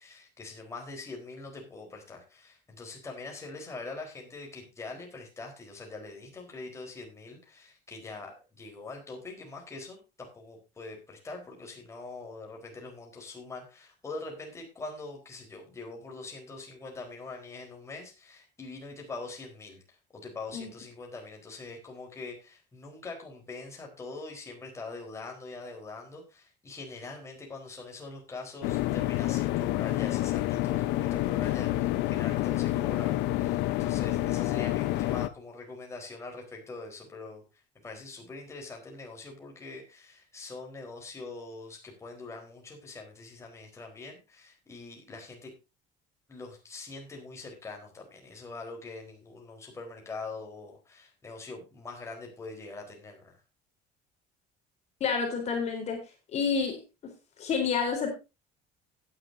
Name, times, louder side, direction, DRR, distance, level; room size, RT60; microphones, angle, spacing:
voice 1, 0.0-19.8 20.1-45.5 46.3-53.4, left 3 dB, 15° left, 0 dB, 4.1 m, -43 dB
sound 1, 28.6-35.3, left 16 dB, 75° left, 0.9 m, -28 dB
voice 2, 55.0-56.0 56.3-57.1 57.4-58.1, left 5 dB, 40° left, 3 dB, 3.8 m, -29 dB
16.5 x 10.0 x 2.7 m, 0.27 s
cardioid pair, 165°, 18 cm